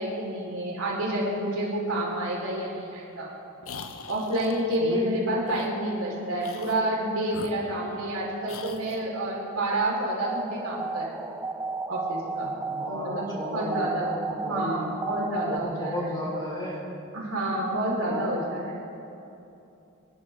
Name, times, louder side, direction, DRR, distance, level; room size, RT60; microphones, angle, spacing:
voice 1, 0.0-3.3 4.1-11.1 11.9-12.6 12.9-14.1 14.5-15.9 17.1-18.8, right 1 dB, 75° right, -4 dB, 4.4 m, -29 dB
sound 1, 3.6-4.8 5.4-5.7 6.4-6.9 7.3-8.1 8.5-9.1, left 4 dB, 70° left, 0.9 m, -42 dB
voice 2, 4.8-5.2 12.7-14.9 15.4-16.9 18.1-18.3, left 1 dB, 20° left, -5 dB, 4.3 m, -34 dB
sound 2, 10.3-15.6, right 4 dB, 10° right, 0.4 m, -34 dB
26.5 x 12.0 x 3.7 m, 2.8 s
head